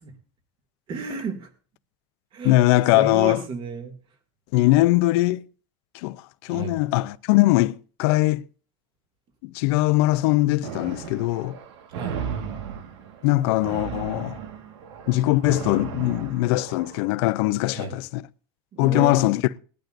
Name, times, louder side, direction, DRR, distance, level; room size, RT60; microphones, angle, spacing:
voice 1, 0.9-1.5 2.3-2.6 2.9-3.9 6.5-6.8 11.9-12.2 17.7-17.9 18.7-19.3, right 4 dB, 35° right, 2.5 m, -32 dB
voice 2, 2.4-3.4 4.5-5.4 6.0-8.4 9.4-11.6 13.2-14.4 15.1-18.2 18.8-19.6, left 18 dB, 65° left, 0.6 m, -21 dB
sound 1, 10.6-17.1, right 7 dB, 90° right, 1.7 m, -35 dB
20.0 x 12.0 x 2.6 m
supercardioid pair, 145°, 14 cm